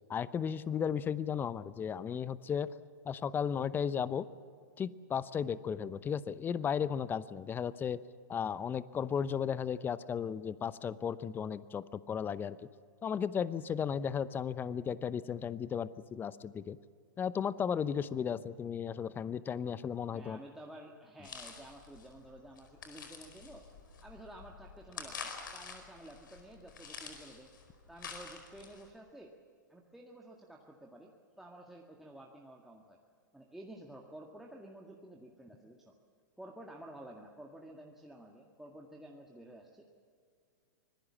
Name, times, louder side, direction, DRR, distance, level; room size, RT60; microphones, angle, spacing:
voice 1, 0.1-2.7 3.0-4.3 4.8-8.0 8.3-12.6 13.0-16.8 17.2-20.4, left 7 dB, 20° left, 17 dB, 0.7 m, -35 dB
voice 2, 20.1-23.7 24.0-27.5 27.9-29.4 29.7-33.0 33.3-35.9 36.4-39.8, right 1 dB, 5° right, -1 dB, 1.8 m, -52 dB
sound 1, 21.2-28.9, left 5 dB, 75° left, 4.7 m, -48 dB
25.0 x 20.0 x 7.4 m, 2.3 s
hypercardioid pair, 120°, 11 cm